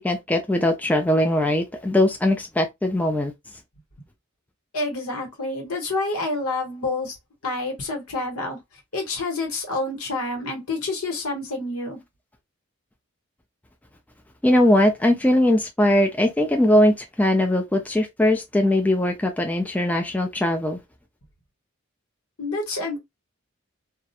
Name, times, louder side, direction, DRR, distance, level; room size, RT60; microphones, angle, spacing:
voice 1, 0.0-3.3 14.4-20.8, left 1 dB, 5° left, 0.3 m, -20 dB
voice 2, 4.7-7.2 7.4-8.6 8.9-12.0 22.4-23.0, left 2 dB, 85° left, 1.1 m, -28 dB
2.3 x 2.1 x 2.8 m
head